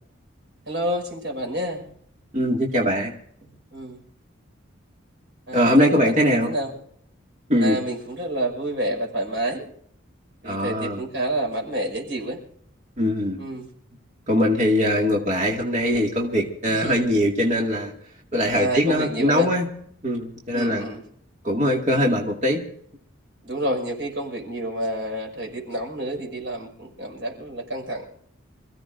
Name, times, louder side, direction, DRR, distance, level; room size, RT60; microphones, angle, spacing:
voice 1, 0.7-1.8 3.7-4.0 5.5-6.7 7.6-9.6 10.4-12.4 13.4-13.7 16.7-17.1 18.5-19.5 20.5-21.0 23.4-28.0, right 1 dB, 60° right, 1 dB, 5.8 m, -29 dB
voice 2, 2.3-3.1 5.5-6.5 7.5-7.8 10.4-11.0 13.0-13.4 14.3-17.9 18.3-19.7 20.0-20.8 21.4-22.6, equal, 35° right, -2 dB, 2.2 m, -21 dB
27.0 x 16.0 x 2.6 m, 0.67 s
head